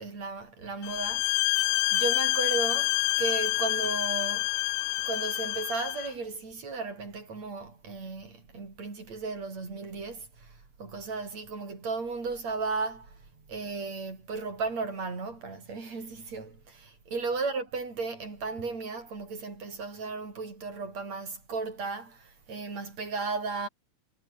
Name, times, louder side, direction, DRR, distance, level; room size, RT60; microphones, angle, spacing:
voice 1, 0.0-1.5 1.9-4.5 5.0-23.7, right 4 dB, 35° right, 6.9 m, -35 dB
sound 1, 0.8-6.1, left 20 dB, 80° left, 2.8 m, -27 dB
omnidirectional pair, 5.7 m